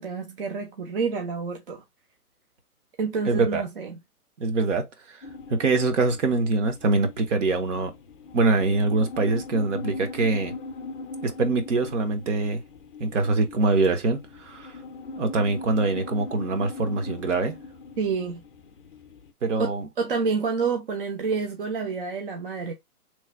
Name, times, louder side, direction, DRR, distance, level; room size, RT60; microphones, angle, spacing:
voice 1, 0.0-1.8 3.0-4.0 18.0-18.4 19.6-22.7, right 5 dB, 40° right, 0.6 m, -28 dB
voice 2, 3.3-3.6 4.4-5.2 5.5-7.9 8.3-10.5 11.2-12.6 13.0-14.7 15.2-17.5 19.4-19.9, right 3 dB, 55° right, 1.0 m, -24 dB
sound 1, 5.2-19.3, left 3 dB, 35° left, 0.5 m, -40 dB
3.1 x 2.2 x 4.1 m
hypercardioid pair, 145°, 45 cm